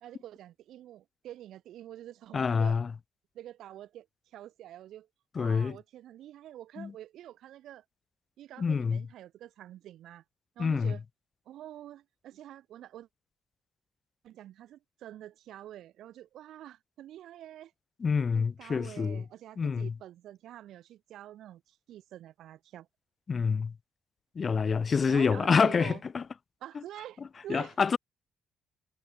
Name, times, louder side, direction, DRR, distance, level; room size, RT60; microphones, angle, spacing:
voice 1, 0.0-2.8 3.3-5.1 5.3-7.8 8.4-10.2 10.6-11.0 11.5-13.1 14.2-17.7 18.3-22.9 25.1-26.0 26.6-27.8, right 12 dB, 75° right, 2.6 m, -47 dB
voice 2, 2.3-2.9 5.4-5.8 6.8-6.9 8.6-9.0 10.6-10.9 18.0-19.2 19.6-19.9 23.3-23.7 24.4-26.2 27.5-28.0, left 5 dB, 40° left, 0.4 m, -27 dB
cardioid pair, 85°, 0 cm